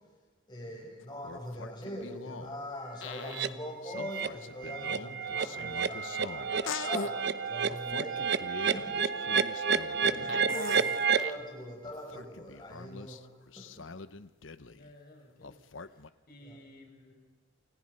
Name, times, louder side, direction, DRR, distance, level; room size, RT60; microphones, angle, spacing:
voice 1, 0.5-8.3 8.7-9.0 10.0-13.3 13.6-13.8 16.5-16.6, equal, 20° left, -1 dB, 7.9 m, -42 dB
sound 1, 1.0-2.6 3.0-3.5 3.8-7.1 7.7-11.4 11.8-14.9 15.4-16.1, left 4 dB, 70° left, 0.9 m, -43 dB
sound 2, 3.3-3.5 3.9-4.3 4.6-11.3, right 6 dB, 55° right, 0.9 m, -30 dB
voice 2, 10.1-10.5 14.7-17.1, left 1 dB, 45° left, 2 dB, 6.2 m, -56 dB
29.0 x 28.0 x 5.5 m, 1.3 s
head